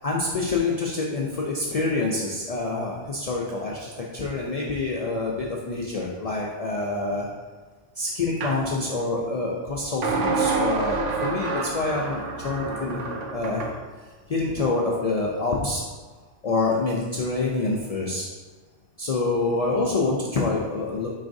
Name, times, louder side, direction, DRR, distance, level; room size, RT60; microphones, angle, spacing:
voice 1, 0.0-7.3 8.0-13.7 14.3-15.8 16.4-18.3 19.0-21.1, left 3 dB, 75° left, -3 dB, 0.3 m, -26 dB
sound 1, 8.4-8.6 10.0-13.8, right 4 dB, 90° right, 0.9 m, -27 dB
4.8 x 3.9 x 2.6 m, 1.4 s
omnidirectional pair, 1.2 m